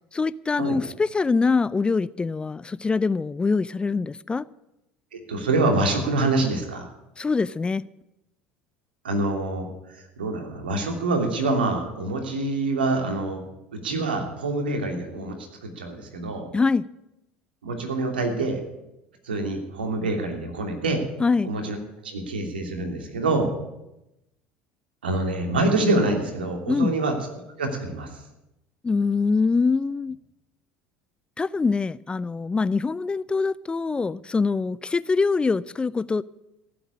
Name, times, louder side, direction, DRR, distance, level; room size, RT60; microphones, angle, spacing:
voice 1, 0.1-4.5 7.2-7.8 16.5-16.8 21.2-21.5 26.7-26.9 28.8-30.2 31.4-36.2, left 4 dB, 20° left, 0.5 m, -24 dB
voice 2, 5.1-6.9 9.0-13.4 13.7-16.5 17.6-18.6 19.2-21.0 21.4-21.8 22.0-23.5 25.0-27.1 27.6-28.1, right 2 dB, 80° right, 2.9 m, -26 dB
15.5 x 7.9 x 9.8 m
hypercardioid pair, 70°, 5 cm